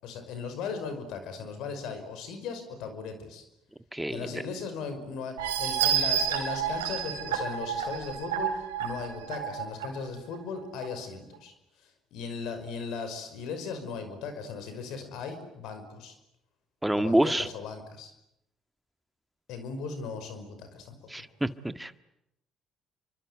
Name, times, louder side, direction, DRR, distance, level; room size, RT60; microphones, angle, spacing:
voice 1, 0.0-3.4 4.1-11.5 11.8-16.2 16.9-18.1 19.5-21.3, left 5 dB, 70° left, 9 dB, 5.6 m, -38 dB
voice 2, 3.9-4.3 16.8-17.5 21.1-22.0, right 1 dB, 10° right, 10 dB, 1.8 m, -27 dB
sound 1, 5.4-9.9 10.3-10.4 10.8-10.9, right 8 dB, 85° right, 3.7 m, -29 dB
29.0 x 24.5 x 8.2 m, 0.83 s
hypercardioid pair, 50°, 0 cm